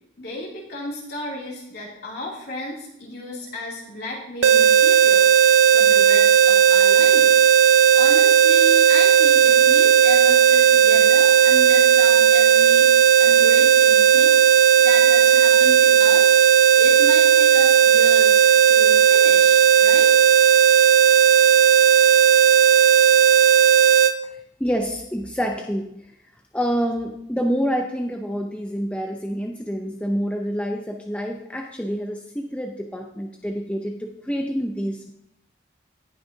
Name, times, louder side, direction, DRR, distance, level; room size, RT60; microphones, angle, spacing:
voice 1, 0.2-7.3 7.9-14.4 14.8-16.4 16.8-20.1, left 1 dB, 55° left, -4 dB, 2.8 m, -33 dB
sound 1, 4.4-24.1, right 8 dB, 75° right, 0.5 m, -15 dB
voice 2, 24.2-25.9 26.5-35.1, equal, 5° left, 2 dB, 0.5 m, -27 dB
18.0 x 6.2 x 2.8 m, 0.78 s
head